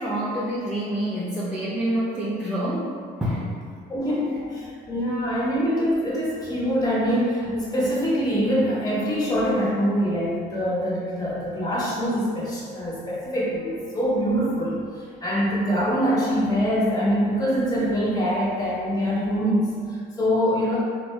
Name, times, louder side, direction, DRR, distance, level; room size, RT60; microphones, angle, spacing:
voice 1, 0.0-2.9 3.2-3.5, right 1 dB, 5° right, -9 dB, 0.3 m, -27 dB
voice 2, 3.9-20.8, equal, 20° left, -6 dB, 0.7 m, -24 dB
2.6 x 2.0 x 2.2 m, 2.1 s
cardioid pair, 110°, 17 cm